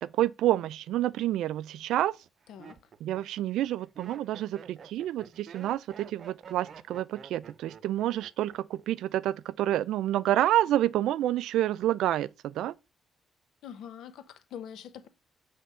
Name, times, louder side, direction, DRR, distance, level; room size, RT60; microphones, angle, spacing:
voice 1, 0.0-2.2 3.0-12.8, right 13 dB, 85° right, 0.3 m, -28 dB
Laughter, 2.2-8.8 9.1-9.6, right 6 dB, 55° right, 0.7 m, -50 dB
voice 2, 13.6-15.1, left 9 dB, 80° left, 0.9 m, -44 dB
7.7 x 3.4 x 5.5 m
cardioid pair, 90°, 0 cm